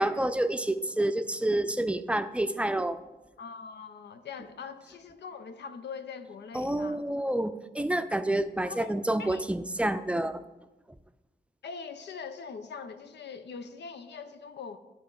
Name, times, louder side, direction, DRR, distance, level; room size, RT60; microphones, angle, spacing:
voice 1, 0.0-3.0 6.5-10.4, right 1 dB, 5° right, 11 dB, 0.5 m, -28 dB
voice 2, 3.4-7.0 8.7-9.5 11.6-14.8, left 5 dB, 80° left, 10 dB, 0.6 m, -42 dB
11.5 x 4.1 x 3.8 m, 1.1 s
cardioid pair, 50°, 18 cm